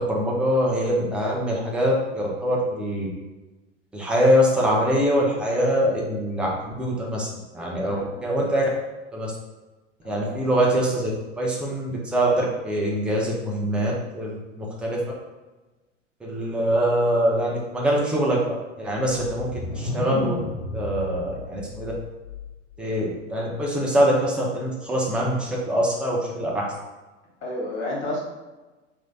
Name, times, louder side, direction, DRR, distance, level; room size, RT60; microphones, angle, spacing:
voice 1, 0.0-3.1 3.9-7.3 7.5-8.7 9.1-9.3 10.0-11.1 11.4-15.0 16.2-18.4 18.8-20.3 20.7-21.9 22.8-26.7, equal, 5° right, -4 dB, 0.5 m, -23 dB
voice 2, 7.7-8.1 10.0-10.4 27.4-28.2, left 1 dB, 30° left, -4 dB, 1.3 m, -31 dB
sound 1, 19.1-22.8, left 2 dB, 45° left, 0.5 m, -33 dB
3.1 x 2.1 x 3.8 m, 1.2 s
figure-of-eight pair, 90°, 37 cm